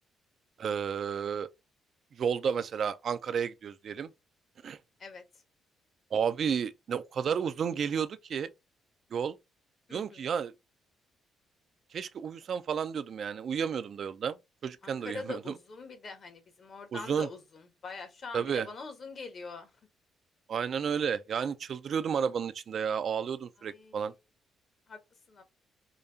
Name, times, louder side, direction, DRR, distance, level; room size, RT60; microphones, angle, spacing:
voice 1, 0.6-1.5 2.2-4.1 4.6-4.8 6.1-8.5 9.1-9.4 9.9-10.5 11.9-14.4 14.6-15.4 16.9-17.3 18.3-18.7 20.5-24.1, right 7 dB, 55° right, 0.4 m, -32 dB
voice 2, 9.9-10.3 14.8-19.7 23.6-24.1 24.9-25.0 25.3-25.4, left 4 dB, 50° left, 1.3 m, -43 dB
5.0 x 2.3 x 2.7 m
cardioid pair, 90°, 0 cm